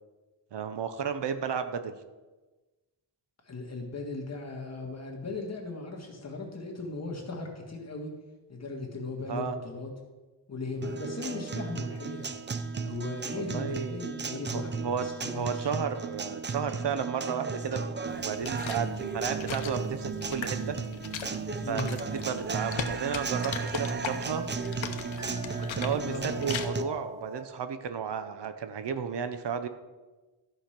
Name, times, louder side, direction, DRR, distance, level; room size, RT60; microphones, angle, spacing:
voice 1, 0.5-1.9 9.3-9.6 13.4-14.2 14.5-15.1 15.3-20.8 21.7-24.5 25.6-29.7, right 7 dB, 65° right, 9 dB, 0.8 m, -33 dB
voice 2, 3.4-8.1 8.5-9.9 10.5-12.3 12.8-15.7 21.6-21.9 25.9-26.3, left 2 dB, 35° left, 0 dB, 1.9 m, -37 dB
Guitar, 10.8-26.8, right 4 dB, 25° right, 0.5 m, -35 dB
sound 1, 18.1-26.7, left 8 dB, 85° left, 0.8 m, -40 dB
sound 2, 22.4-27.4, equal, 5° right, 1.7 m, -45 dB
13.0 x 5.1 x 5.9 m, 1.2 s
wide cardioid pair, 160°, 45 cm